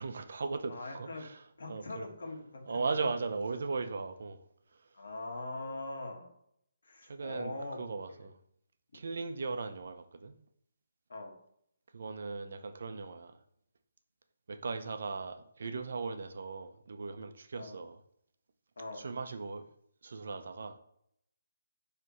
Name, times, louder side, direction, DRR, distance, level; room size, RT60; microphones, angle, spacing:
voice 1, 0.0-2.1 2.7-4.4 4.7-4.8 7.0-8.4 8.9-10.4 11.9-13.4 14.5-18.0 18.9-19.6 20.0-20.8, right 4 dB, 60° right, 0.7 m, -38 dB
voice 2, 0.7-1.3 1.6-2.9 4.9-6.3 6.8-7.8 8.1-8.3 11.1-11.4 17.6-17.8 18.8-19.0, left 2 dB, 75° left, 1.7 m, -42 dB
9.7 x 3.3 x 3.1 m
hypercardioid pair, 170°, 0 cm